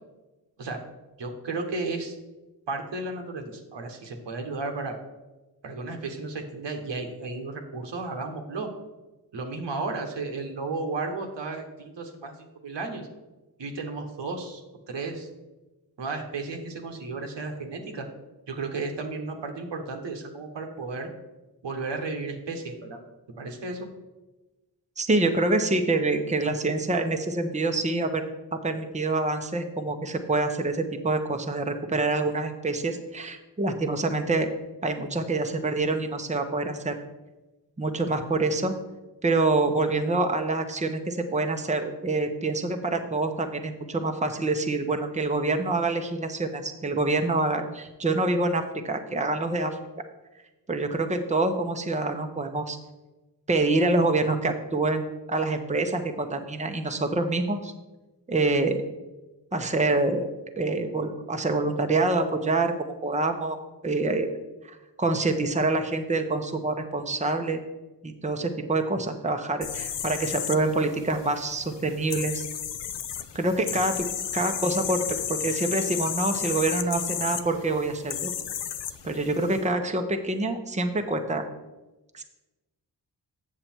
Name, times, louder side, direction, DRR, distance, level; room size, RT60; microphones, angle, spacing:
voice 1, 1.2-2.2 2.7-5.0 5.6-8.7 9.3-13.1 13.6-14.6 14.9-15.3 16.0-18.1 18.5-21.1 21.6-23.0 23.4-23.9, right 3 dB, 80° right, 4 dB, 1.3 m, -33 dB
voice 2, 25.0-28.2 28.5-34.5 34.8-37.0 37.8-38.7 39.2-49.8 50.7-52.8 53.5-57.7 58.3-58.8 59.5-60.3 60.6-63.6 63.8-64.3 64.6-67.6 68.0-72.5 73.3-74.1 74.3-78.3 79.0-81.4 82.1-82.2, right 2 dB, 15° right, 5 dB, 0.9 m, -26 dB
sound 1, 69.6-79.6, left 9 dB, 80° left, 0.7 m, -33 dB
7.7 x 6.8 x 4.5 m, 1.1 s
cardioid pair, 55°, 42 cm